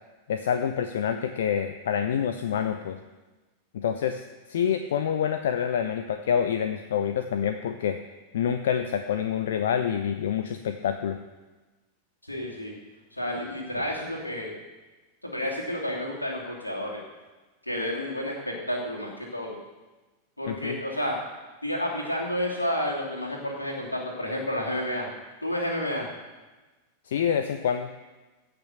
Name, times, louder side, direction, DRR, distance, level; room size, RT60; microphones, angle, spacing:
voice 1, 0.3-3.0 3.7-4.2 4.5-8.0 8.3-11.2 20.5-20.8 27.1-27.9, left 8 dB, 60° left, 9 dB, 0.6 m, -27 dB
voice 2, 12.2-12.7 13.1-14.5 15.2-17.0 17.7-19.6 20.4-21.2 21.6-25.1 25.4-26.1, left 1 dB, 85° left, -2 dB, 2.8 m, -30 dB
16.0 x 6.1 x 6.7 m, 1.2 s
figure-of-eight pair, 90°, 0 cm